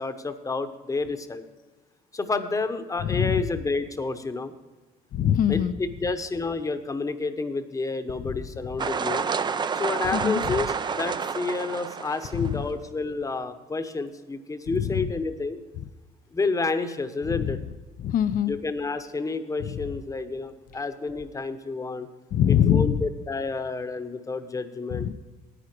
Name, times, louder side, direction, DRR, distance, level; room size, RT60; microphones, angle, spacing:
voice 1, 0.0-1.4 2.1-4.5 5.5-9.2 9.8-15.6 16.3-17.6 18.5-22.1 22.5-25.1, left 3 dB, 20° left, 10 dB, 0.9 m, -30 dB
voice 2, 3.0-3.4 5.1-5.8 10.1-10.5 12.3-12.6 14.7-14.9 17.3-17.5 18.0-18.5 19.6-19.8 22.3-23.0 24.9-25.1, left 9 dB, 55° left, 15 dB, 0.5 m, -23 dB
sound 1, 8.8-12.5, right 6 dB, 25° right, 0.4 m, -29 dB
10.0 x 9.0 x 4.5 m, 1.2 s
cardioid pair, 110°, 17 cm